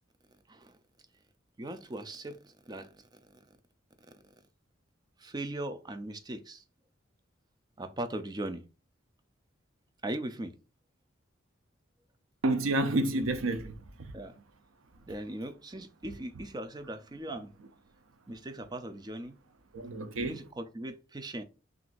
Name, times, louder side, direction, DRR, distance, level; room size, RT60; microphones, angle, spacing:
voice 1, 1.6-2.9 5.2-6.6 7.8-8.6 10.0-10.5 14.1-14.4 15.1-17.5 18.3-19.4 20.2-21.4, right 1 dB, 20° right, 0.5 m, -39 dB
voice 2, 12.4-14.1 17.3-17.4 19.7-20.4, right 2 dB, 90° right, 0.6 m, -30 dB
5.9 x 2.6 x 2.5 m
head